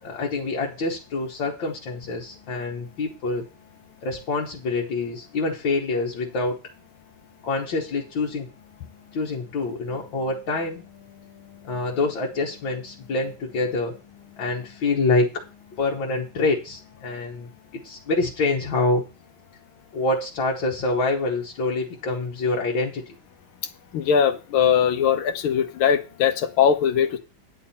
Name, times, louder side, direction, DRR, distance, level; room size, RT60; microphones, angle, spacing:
voice 1, 0.0-3.5 4.0-6.6 7.4-8.5 9.1-10.8 11.6-14.0 14.4-15.4 15.8-19.0 19.9-23.0, left 3 dB, 65° left, -2 dB, 2.0 m, -26 dB
voice 2, 23.9-27.2, left 8 dB, 85° left, 8 dB, 1.7 m, -20 dB
9.9 x 8.8 x 4.2 m, 0.32 s
omnidirectional pair, 2.3 m